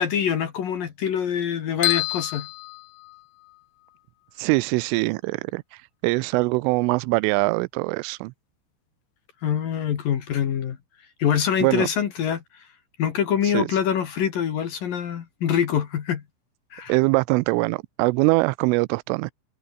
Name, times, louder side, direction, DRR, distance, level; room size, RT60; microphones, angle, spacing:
voice 1, 0.0-2.5 9.4-10.8 11.2-12.6 13.0-16.2 16.7-16.9, left 8 dB, 55° left, 3.1 m, -25 dB
sound 1, 1.8-3.6, left 24 dB, 85° left, 3.0 m, -28 dB
voice 2, 4.3-8.3 11.6-11.9 13.4-13.8 16.9-19.3, right 25 dB, 85° right, 3.1 m, -23 dB
omnidirectional pair, 5.7 m